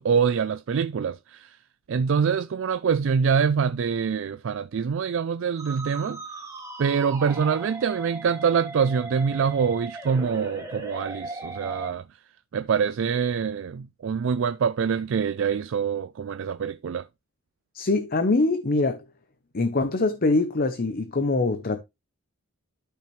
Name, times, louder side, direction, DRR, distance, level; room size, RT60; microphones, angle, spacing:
voice 1, 0.0-1.6 1.9-6.2 6.8-12.0 12.5-17.1, right 6 dB, 65° right, 0.4 m, -25 dB
Musical instrument, 5.6-11.9, right 3 dB, 15° right, 2.0 m, -38 dB
voice 2, 17.7-19.0 19.5-21.8, left 3 dB, 45° left, 0.8 m, -23 dB
12.0 x 5.6 x 3.2 m
head